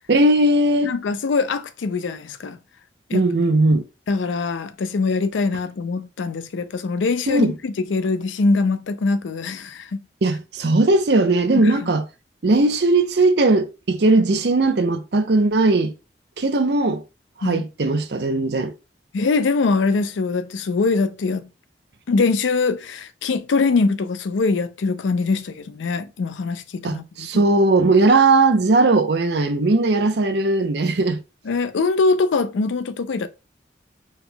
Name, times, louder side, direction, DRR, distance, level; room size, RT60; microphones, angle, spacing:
voice 1, 0.1-0.9 3.1-3.8 7.3-7.5 10.2-12.0 12.4-15.9 16.4-17.0 17.4-18.7 26.8-31.2, right 2 dB, 65° right, 0.6 m, -18 dB
voice 2, 0.8-2.6 3.1-3.3 4.1-10.0 11.5-11.9 17.4-17.6 19.1-21.5 22.1-27.4 31.5-33.3, left 4 dB, 85° left, 0.4 m, -23 dB
4.2 x 2.2 x 3.8 m
head